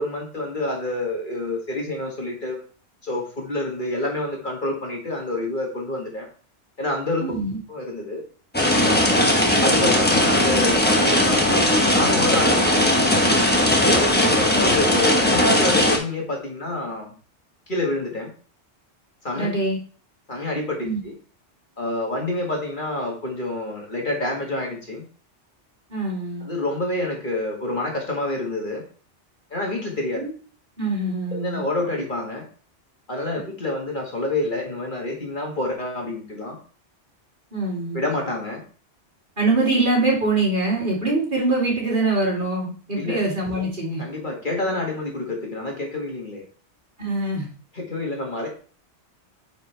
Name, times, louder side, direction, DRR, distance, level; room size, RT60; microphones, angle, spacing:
voice 1, 0.0-2.6 3.0-6.3 6.8-7.2 7.7-8.2 9.6-12.9 13.8-17.1 17.7-18.3 19.2-19.5 20.3-21.1 21.8-25.0 26.4-28.8 29.5-30.2 31.4-32.5 33.1-36.6 37.9-38.6 42.9-43.2 44.0-46.4 47.7-48.5, left 2 dB, 45° left, 0 dB, 1.9 m, -27 dB
voice 2, 7.2-7.6 19.3-19.8 20.8-21.0 25.9-26.5 30.1-30.3 30.8-31.6 37.5-38.0 39.4-44.0 47.0-47.5, right 2 dB, 45° right, -5 dB, 3.3 m, -23 dB
sound 1, 8.5-16.0, left 1 dB, 10° left, 1.1 m, -18 dB
9.4 x 5.0 x 3.4 m, 0.41 s
omnidirectional pair, 1.2 m